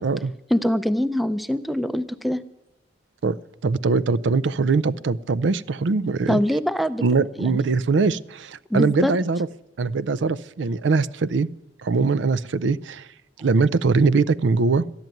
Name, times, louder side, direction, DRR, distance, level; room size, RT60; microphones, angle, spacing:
voice 1, 0.5-2.4 6.3-7.0 7.4-7.6 8.7-9.1, equal, ahead, 13 dB, 0.5 m, -23 dB
voice 2, 3.6-6.4 7.0-9.5 9.8-11.5 11.8-13.1 13.4-14.9, right 4 dB, 75° right, 17 dB, 0.5 m, -22 dB
13.5 x 11.0 x 9.1 m, 0.92 s
head